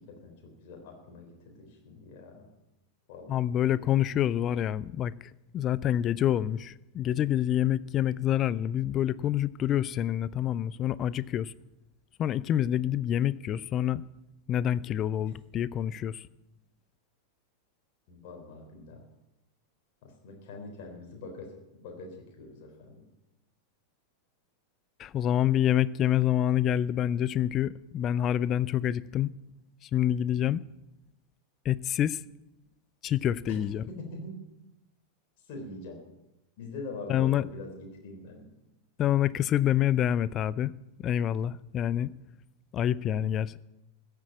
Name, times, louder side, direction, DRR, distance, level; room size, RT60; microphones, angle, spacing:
voice 1, 0.1-2.5 3.1-3.9 18.1-19.0 20.0-23.0 33.5-33.6 34.0-34.3 35.5-36.0 36.6-38.5, left 2 dB, 50° left, 3.7 m, -44 dB
voice 2, 3.3-5.1 5.5-11.5 12.2-14.0 14.5-16.3 25.0-29.3 29.8-30.6 31.6-32.2 33.0-33.8 37.1-37.5 39.0-40.7 41.0-42.1 42.7-43.6, left 11 dB, 30° left, 0.5 m, -27 dB
15.0 x 8.3 x 8.6 m
figure-of-eight pair, 90°, 0 cm